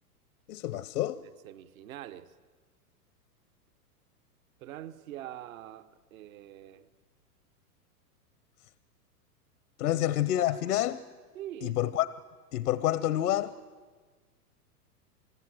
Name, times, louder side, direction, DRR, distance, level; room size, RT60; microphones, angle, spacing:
voice 1, 0.5-1.2 9.8-11.0 11.6-12.1 12.5-13.6, left 13 dB, 70° left, 0.9 m, -28 dB
voice 2, 1.2-2.3 4.6-6.9 9.9-10.0 10.3-10.6 11.3-11.8, right 12 dB, 60° right, 1.2 m, -44 dB
28.5 x 20.0 x 7.8 m
hypercardioid pair, 115°, 46 cm